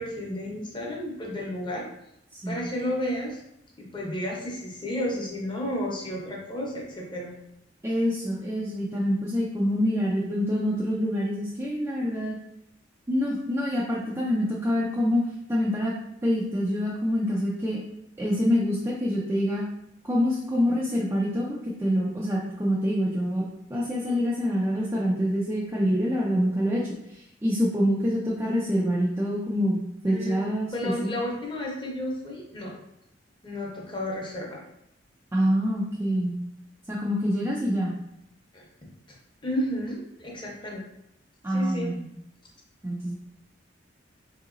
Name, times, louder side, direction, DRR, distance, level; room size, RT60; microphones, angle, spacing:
voice 1, 0.0-1.9 2.5-3.4 3.8-7.3 30.1-30.4 30.7-32.7 33.4-34.6 38.5-38.7 39.4-40.8 41.5-42.0, equal, 25° left, -2 dB, 0.8 m, -32 dB
voice 2, 7.8-12.4 13.1-15.2 15.5-15.9 16.2-17.8 18.2-19.6 20.0-31.1 35.3-36.3 36.9-38.0 41.4-42.1 42.8-43.1, equal, 15° right, -5 dB, 0.4 m, -26 dB
3.7 x 2.8 x 2.5 m, 0.80 s
head